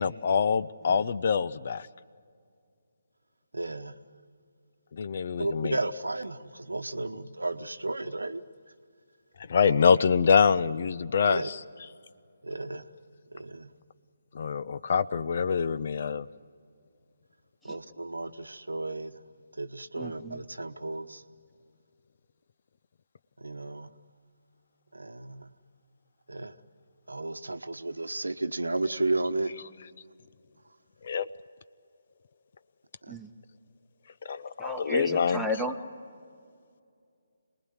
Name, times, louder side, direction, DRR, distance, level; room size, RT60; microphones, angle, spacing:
voice 1, 0.0-1.9 5.0-5.7 9.5-11.4 14.3-16.3 31.0-31.3 34.2-35.5, left 6 dB, 45° left, 15 dB, 0.6 m, -25 dB
voice 2, 3.5-4.0 5.4-8.7 11.2-11.5 12.4-12.9 13.3-13.8 17.6-19.2 19.5-21.2 23.4-24.0 24.9-25.5 26.3-26.6 27.1-29.6 30.6-30.8 33.0-33.2, right 2 dB, 75° right, 11 dB, 1.0 m, -33 dB
voice 3, 34.6-35.8, left 1 dB, ahead, 5 dB, 1.2 m, -33 dB
27.0 x 20.0 x 9.7 m, 2.3 s
figure-of-eight pair, 145°, 0 cm